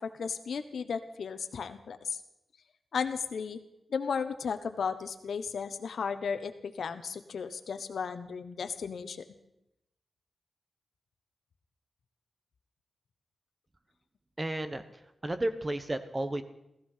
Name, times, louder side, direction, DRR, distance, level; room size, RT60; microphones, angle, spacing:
voice 1, 0.0-2.2 2.9-3.6 3.9-6.5 6.8-9.2, left 6 dB, 80° left, 9 dB, 1.1 m, -34 dB
voice 2, 14.4-14.8 15.2-16.4, right 1 dB, 25° right, 10 dB, 1.2 m, -32 dB
15.5 x 14.5 x 5.7 m, 0.87 s
wide cardioid pair, 85°, 0 cm